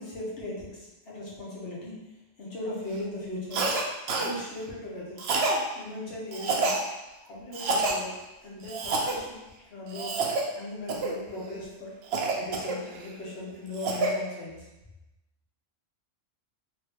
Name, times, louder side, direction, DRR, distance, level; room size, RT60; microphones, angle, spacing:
voice 1, 0.0-2.1 2.4-3.8 4.1-5.2 5.7-6.8 7.3-8.1 8.4-10.2 10.5-11.9 12.4-14.6, left 1 dB, 55° left, -5 dB, 1.2 m, -38 dB
Cough, 3.5-3.8 4.1-4.3 5.2-5.6 6.3-6.8 7.5-8.0 8.7-9.2 9.9-10.4 10.9-11.2 12.1-13.1 13.5-14.1, right 3 dB, 65° right, 0.7 m, -27 dB
3.1 x 2.8 x 3.5 m, 1.0 s
omnidirectional pair, 1.3 m